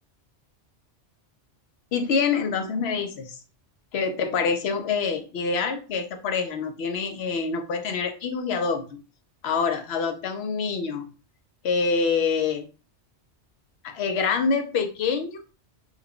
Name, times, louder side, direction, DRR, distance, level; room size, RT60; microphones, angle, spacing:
voice 1, 1.9-3.4 3.9-9.0 9.4-11.1 11.6-12.7 13.8-15.4, left 5 dB, 70° left, 6 dB, 0.8 m, -26 dB
3.1 x 2.2 x 3.6 m, 0.33 s
omnidirectional pair, 1.1 m